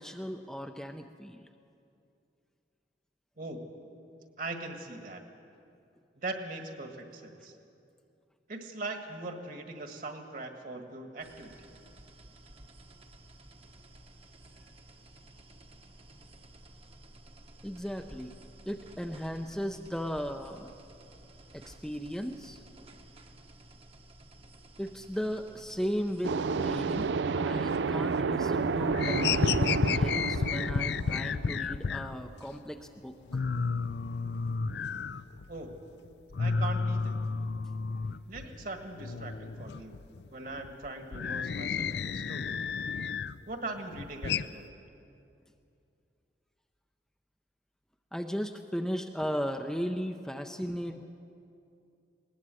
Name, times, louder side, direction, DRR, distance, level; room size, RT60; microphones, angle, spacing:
voice 1, 0.0-1.5 17.6-18.3 18.7-20.7 21.5-22.6 24.8-33.4 48.1-51.0, equal, 5° left, 4 dB, 0.5 m, -36 dB
voice 2, 4.4-5.2 6.2-7.6 8.5-11.7 35.5-35.7 36.4-37.2 38.3-40.0 40.3-42.5 43.5-44.8, right 2 dB, 50° right, 5 dB, 1.8 m, -40 dB
sound 1, 11.2-27.1, right 1 dB, 35° right, 1.1 m, -54 dB
sound 2, 26.2-31.9, right 4 dB, 80° right, 0.4 m, -30 dB
sound 3, 27.7-28.4 28.7-32.2 32.6-32.7 33.0-33.1 33.3-35.8 36.0-38.7 39.0-43.4 43.8-44.5, left 5 dB, 70° left, 0.5 m, -32 dB
20.0 x 18.5 x 7.7 m, 2.6 s
head